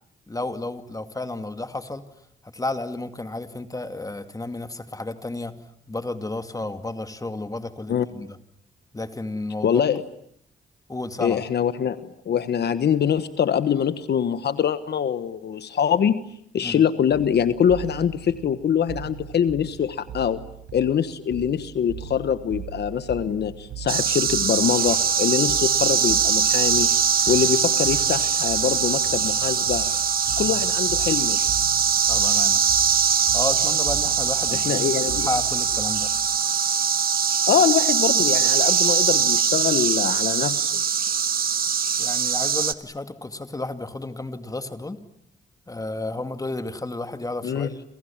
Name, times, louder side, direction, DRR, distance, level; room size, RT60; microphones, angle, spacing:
voice 1, 0.3-2.0 2.5-5.5 5.9-8.3 8.9-9.8 10.9-11.4 16.6-16.8 32.1-32.6 33.3-36.1 42.0-45.0 45.7-47.8, left 2 dB, 20° left, 8 dB, 2.5 m, -32 dB
voice 2, 9.6-10.0 11.2-12.0 12.2-16.2 16.5-20.4 20.7-26.9 27.3-29.9 30.4-31.4 34.5-35.3 37.5-40.8 47.4-47.7, left 8 dB, 70° left, 12 dB, 1.3 m, -23 dB
sound 1, 17.1-36.2, right 9 dB, 85° right, 7.3 m, -39 dB
sound 2, 23.9-42.7, right 7 dB, 55° right, 1.3 m, -22 dB
sound 3, 24.6-39.4, left 1 dB, 15° right, 5.0 m, -40 dB
29.0 x 28.0 x 7.4 m, 0.68 s
cardioid pair, 80°, 18 cm